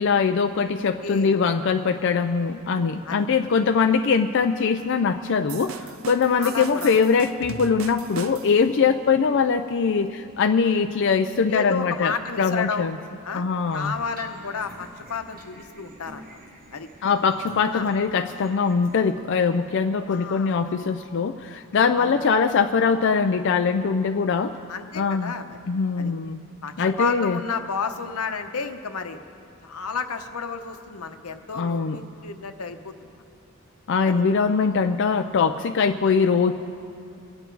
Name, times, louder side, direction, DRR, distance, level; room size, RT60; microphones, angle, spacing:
voice 1, 0.0-13.0 13.3-13.9 17.0-24.6 25.0-25.3 25.7-26.4 26.8-27.4 31.5-32.0 33.9-36.5, left 5 dB, 55° left, 6 dB, 0.4 m, -22 dB
voice 2, 0.7-1.4 3.1-3.3 6.4-6.9 11.5-12.9 13.2-13.4 13.7-16.2 16.7-16.9 17.7-17.9 20.1-20.7 22.0-22.2 24.7-25.6 26.0-26.1 26.6-29.2 29.6-33.1 34.0-34.2, left 5 dB, 90° left, 7 dB, 0.9 m, -31 dB
sound 1, 5.5-8.7, right 6 dB, 65° right, 0.5 m, -37 dB
sound 2, 13.6-19.1, right 1 dB, 40° right, 1.3 m, -46 dB
25.0 x 9.1 x 4.6 m, 2.5 s
head